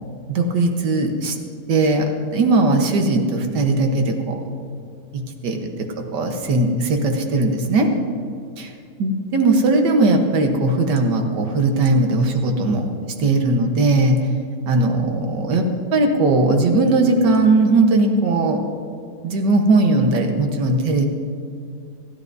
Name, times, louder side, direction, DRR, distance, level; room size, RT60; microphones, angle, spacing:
voice 1, 0.3-1.4 1.7-4.4 5.1-7.9 9.0-12.9 13.2-14.2 14.7-15.6 15.9-18.6 19.2-21.1, right 2 dB, 85° right, 3 dB, 1.8 m, -18 dB
27.0 x 11.0 x 2.7 m, 2.3 s
omnidirectional pair, 1.8 m